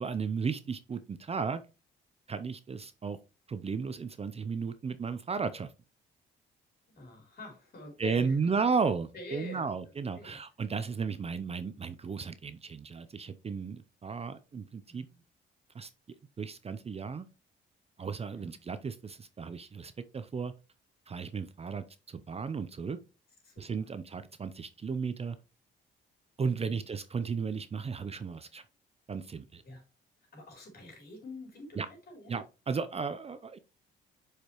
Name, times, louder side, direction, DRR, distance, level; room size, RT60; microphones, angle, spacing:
voice 1, 0.0-1.6 2.3-3.2 3.5-5.7 8.0-15.0 15.7-15.9 16.4-17.3 18.0-20.5 21.1-23.0 23.6-25.4 26.4-28.6 29.1-29.6 31.8-31.9 32.3-33.6, right 5 dB, 30° right, 12 dB, 0.6 m, -34 dB
voice 2, 7.0-8.5 9.1-9.7 10.2-10.4 14.9-15.2 18.3-18.6 23.4-23.9 26.5-26.8 29.6-29.8 30.3-32.4, left 2 dB, 50° left, 2 dB, 3.6 m, -47 dB
6.9 x 5.0 x 3.0 m, 0.30 s
cardioid pair, 90°, 20 cm